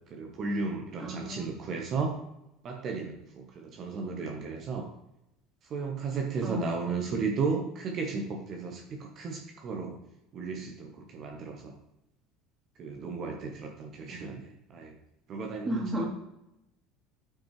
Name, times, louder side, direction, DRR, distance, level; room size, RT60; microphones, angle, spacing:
voice 1, 0.1-2.2 2.6-4.9 5.7-10.0 10.3-11.8 12.8-15.0 15.3-16.1, right 4 dB, 40° right, 2 dB, 1.1 m, -34 dB
voice 2, 1.0-1.5 6.4-6.7 15.6-16.1, equal, 20° right, -2 dB, 2.8 m, -32 dB
8.7 x 5.2 x 3.2 m, 0.87 s
figure-of-eight pair, 65°, 0 cm